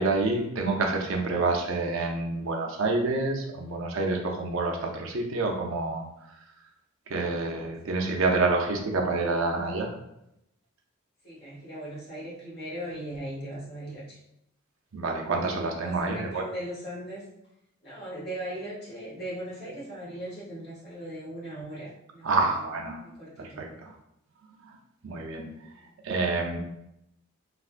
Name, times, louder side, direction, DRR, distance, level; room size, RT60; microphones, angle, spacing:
voice 1, 0.0-6.0 7.1-9.9 14.9-16.4 22.2-23.0 23.4-23.9 24.6-24.8 25.0-25.5 26.0-26.6, right 3 dB, 70° right, 1 dB, 0.5 m, -28 dB
voice 2, 7.8-8.2 11.2-14.2 15.8-17.2 17.8-22.4 22.9-23.8 25.6-25.9, right 1 dB, 50° left, -7 dB, 1.2 m, -39 dB
3.3 x 2.5 x 2.5 m, 0.81 s
head